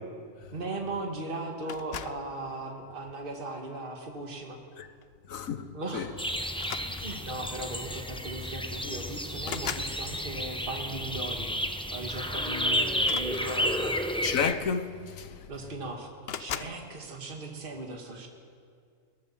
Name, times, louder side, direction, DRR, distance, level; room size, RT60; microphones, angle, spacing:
voice 1, 0.5-4.6 5.7-6.1 6.8-11.5 11.9-14.0 15.5-16.1 16.4-18.3, right 2 dB, 40° right, 2.2 m, -38 dB
sound 1, 1.7-2.3 3.2-3.5 5.0-5.2 5.5-5.6 6.5-7.4 8.4-8.5 8.8-10.0 12.9-14.0 14.9-15.0 15.3-15.8 16.2-16.8, left 8 dB, 55° left, 0.9 m, -39 dB
voice 2, 5.3-6.1 14.2-15.5, left 6 dB, 90° left, 1.5 m, -31 dB
sound 2, 6.2-14.5, equal, 5° left, 0.9 m, -31 dB
21.5 x 18.0 x 7.4 m
omnidirectional pair, 1.4 m